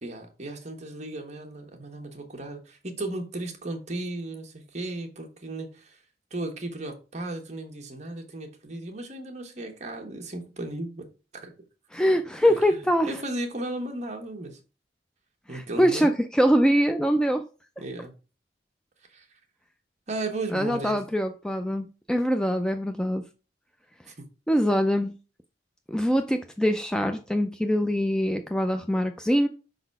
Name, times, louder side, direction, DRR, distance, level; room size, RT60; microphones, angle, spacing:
voice 1, 0.0-6.0 6.3-11.1 11.4-11.5 12.4-12.8 13.0-14.6 15.5-16.1 17.8-18.1 19.1-19.3 20.1-21.0 24.1-24.2, right 2 dB, 40° right, 1.3 m, -35 dB
voice 2, 11.9-13.1 15.5-17.4 20.5-23.2 24.5-25.1 25.9-29.5, equal, 5° left, 0.4 m, -23 dB
5.4 x 4.0 x 5.3 m
head